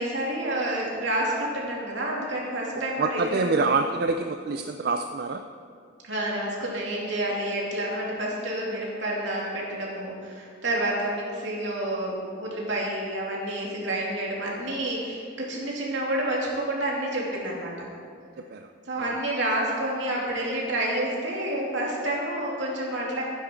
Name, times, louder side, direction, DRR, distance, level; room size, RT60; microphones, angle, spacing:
voice 1, 0.0-3.7 6.0-17.9 18.9-23.2, right 1 dB, 75° right, -3 dB, 2.8 m, -29 dB
voice 2, 3.0-5.4 18.5-18.7 19.0-19.1, right 4 dB, 55° right, 6 dB, 0.4 m, -26 dB
11.5 x 10.0 x 4.6 m, 2.3 s
head